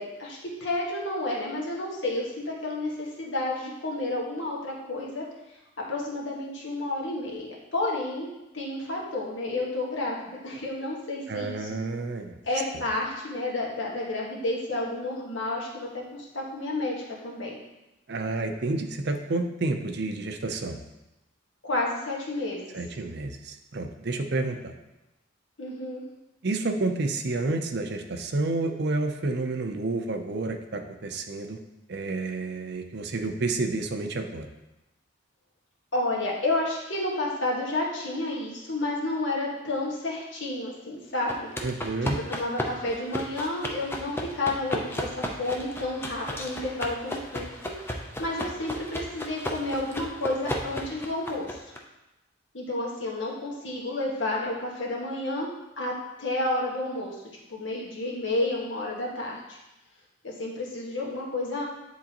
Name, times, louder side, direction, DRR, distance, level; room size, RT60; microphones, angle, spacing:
voice 1, 0.0-5.2 5.9-8.3 8.5-11.7 12.4-17.6 21.6-22.6 25.6-26.0 35.9-41.5 42.0-51.6 52.5-55.5 55.8-55.9 56.2-57.2 57.5-59.6 60.2-61.6, left 2 dB, 70° left, -3 dB, 1.4 m, -31 dB
voice 2, 11.3-12.4 18.1-20.8 22.7-24.7 26.4-31.6 31.9-34.5 41.6-42.2, right 2 dB, 55° right, 6 dB, 0.6 m, -30 dB
sound 1, 41.3-51.8, equal, 10° left, 0.6 m, -35 dB
10.0 x 3.7 x 2.9 m, 0.96 s
head